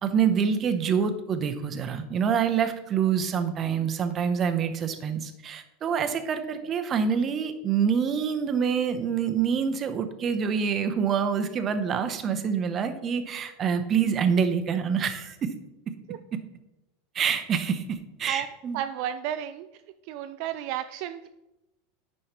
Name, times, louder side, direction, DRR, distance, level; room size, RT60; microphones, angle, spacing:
voice 1, 0.0-15.5 16.3-16.4 17.1-18.8, right 7 dB, 30° right, 8 dB, 0.7 m, -26 dB
voice 2, 18.7-19.7 20.0-21.3, right 11 dB, 55° right, 9 dB, 0.3 m, -32 dB
9.9 x 5.4 x 3.0 m, 0.98 s
supercardioid pair, 145°, 0 cm